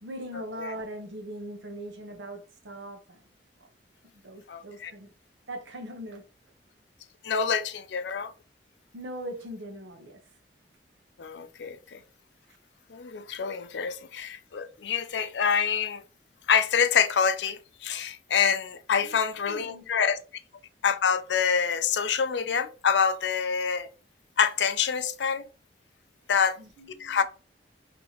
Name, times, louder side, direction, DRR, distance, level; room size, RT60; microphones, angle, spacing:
voice 1, 0.0-3.2 3.6-3.7 4.1-5.1 5.5-6.2 8.9-10.2 19.0-19.2 19.5-19.9 26.6-27.2, right 1 dB, 85° right, 0.9 m, -40 dB
voice 2, 4.5-4.9 7.2-8.3 11.2-12.0 12.9-16.0 16.5-20.2 20.8-23.9 24.4-25.5 26.3-26.6 27.0-27.2, left 6 dB, 80° left, 0.4 m, -26 dB
3.9 x 2.9 x 2.9 m
head